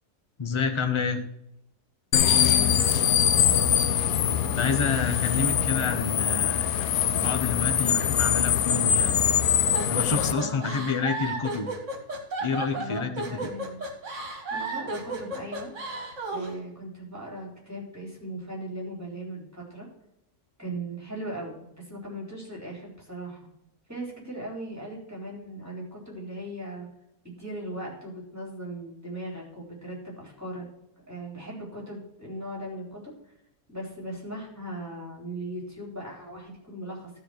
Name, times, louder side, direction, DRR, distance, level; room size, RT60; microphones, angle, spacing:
voice 1, 0.4-1.2 4.5-9.2 9.9-11.7 12.4-13.3, left 5 dB, 25° left, 7 dB, 0.7 m, -29 dB
sound 1, 2.1-10.3, left 9 dB, 70° left, 1.1 m, -23 dB
voice 2, 2.3-2.8 10.3-10.8 12.7-13.8 14.2-15.7 16.3-19.9 20.6-23.5 23.9-26.9 27.2-30.7 31.1-33.1 33.7-37.1, right 1 dB, 10° right, -2 dB, 3.9 m, -38 dB
sound 2, 9.7-16.6, right 3 dB, 55° right, 2.0 m, -33 dB
12.5 x 4.4 x 6.4 m, 0.80 s
omnidirectional pair, 1.6 m